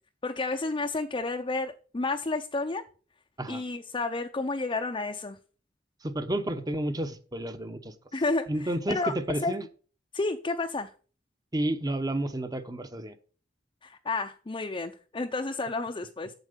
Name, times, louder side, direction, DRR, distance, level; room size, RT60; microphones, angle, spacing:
voice 1, 0.2-2.8 3.5-5.4 8.1-9.1 9.4-9.5 10.1-10.9 13.8-16.3, left 3 dB, 30° left, 0.5 m, -31 dB
voice 2, 6.0-7.9 8.5-9.6 11.5-13.1, right 1 dB, 20° right, 0.9 m, -31 dB
8.1 x 7.6 x 5.1 m
head